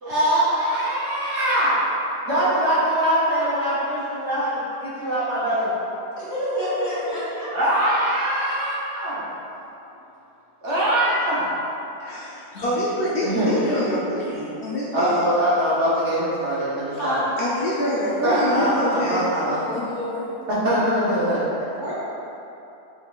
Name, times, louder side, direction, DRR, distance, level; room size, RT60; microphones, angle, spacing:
voice 1, 0.0-1.8 2.2-5.7 7.5-9.3 10.6-11.5 13.2-13.5 14.9-17.2 18.2-19.6 20.5-21.5, right 1 dB, 50° right, -10 dB, 1.1 m, -22 dB
voice 2, 6.2-7.6 16.9-17.2 21.8-21.9, equal, 45° left, -11 dB, 1.9 m, -27 dB
voice 3, 12.0-15.2 17.4-20.3, left 1 dB, 80° left, -8 dB, 0.5 m, -26 dB
6.1 x 3.6 x 2.3 m, 2.9 s
omnidirectional pair, 1.8 m